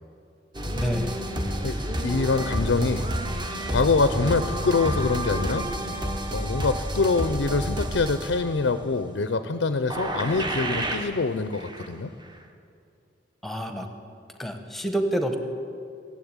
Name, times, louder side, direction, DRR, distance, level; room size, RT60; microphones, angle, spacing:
sound 1, 0.5-8.8 9.9-11.2 11.5-12.0 12.2-12.3, equal, 25° right, 1.2 m, -30 dB
voice 1, 0.7-1.2 13.4-13.9 14.4-15.4, equal, ahead, 5 dB, 1.1 m, -28 dB
voice 2, 2.0-3.1 3.7-5.7 6.3-12.1, left 3 dB, 85° left, 11 dB, 0.6 m, -25 dB
17.0 x 7.6 x 8.8 m, 2.5 s
head